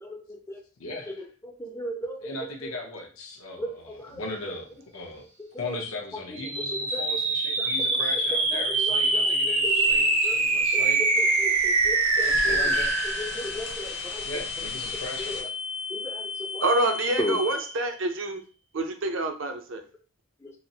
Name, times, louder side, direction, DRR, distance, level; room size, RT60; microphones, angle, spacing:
voice 1, 0.0-0.6 1.1-2.7 3.6-4.6 5.4-5.8 6.3-7.0 7.6-9.9 10.2-10.4 10.7-12.7 13.0-14.3 14.9-15.5 15.9-16.6 17.2-17.4, left 1 dB, 15° left, 4 dB, 0.4 m, -37 dB
voice 2, 0.8-1.2 2.2-4.7 4.9-5.3 5.6-11.0 12.2-12.9 14.2-15.4, left 2 dB, 90° left, 2 dB, 0.7 m, -38 dB
sound 1, 6.4-17.9, right 2 dB, 90° right, 0.8 m, -26 dB
sound 2, 9.6-15.4, left 3 dB, 50° left, 0.8 m, -40 dB
voice 3, 16.6-18.4 18.7-19.8, right 2 dB, 65° right, 6 dB, 0.5 m, -27 dB
4.0 x 2.0 x 2.7 m, 0.37 s
head